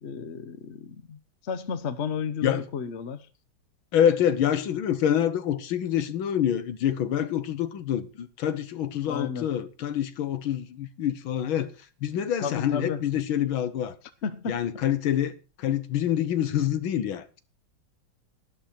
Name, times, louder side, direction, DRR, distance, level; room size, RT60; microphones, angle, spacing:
voice 1, 0.0-3.3 9.1-9.5 12.4-13.0 14.2-14.6, left 6 dB, 55° left, 0.8 m, -32 dB
voice 2, 3.9-11.7 12.0-13.9 14.5-15.3 15.6-17.4, left 10 dB, 70° left, 1.7 m, -26 dB
12.0 x 11.5 x 4.4 m
omnidirectional pair, 2.4 m